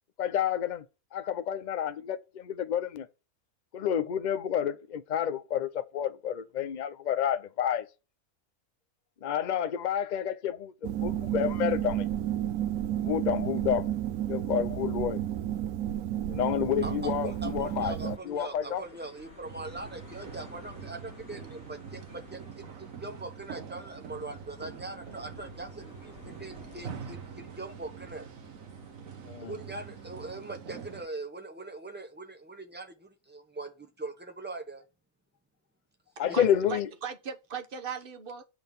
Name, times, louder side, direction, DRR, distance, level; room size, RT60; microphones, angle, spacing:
voice 1, 0.2-0.8 1.1-3.1 3.7-7.9 9.2-10.7 11.0-12.0 13.0-13.9 14.2-15.2 16.3-18.8 29.3-29.5 36.2-36.9, left 9 dB, 50° left, 0.5 m, -29 dB
sound 1, 10.8-18.2, right 12 dB, 85° right, 1.1 m, -31 dB
sound 2, 16.8-30.4, left 2 dB, 65° left, 3.3 m, -54 dB
voice 2, 16.8-28.3 29.4-34.8 36.3-36.5, right 2 dB, 10° right, 1.2 m, -41 dB
sound 3, 19.5-31.1, right 7 dB, 70° right, 1.4 m, -45 dB
voice 3, 36.2-38.4, right 6 dB, 45° right, 1.0 m, -38 dB
8.6 x 3.9 x 6.8 m
omnidirectional pair, 1.5 m